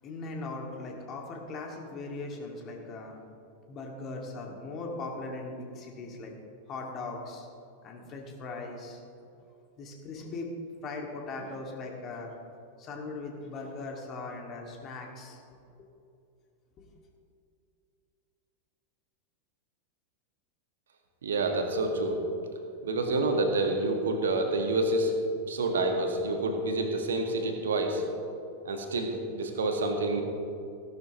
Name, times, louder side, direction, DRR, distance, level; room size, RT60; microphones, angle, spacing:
voice 1, 0.0-3.2 3.7-6.3 6.7-7.5 7.8-9.0 9.8-10.5 10.8-12.3 12.8-15.4, left 3 dB, 30° left, 0 dB, 2.3 m, -39 dB
voice 2, 21.2-22.2 22.8-25.1 25.5-28.0 28.6-30.2, right 2 dB, 65° right, 4 dB, 1.7 m, -28 dB
17.5 x 11.5 x 3.1 m, 2.5 s
figure-of-eight pair, 90°, 0 cm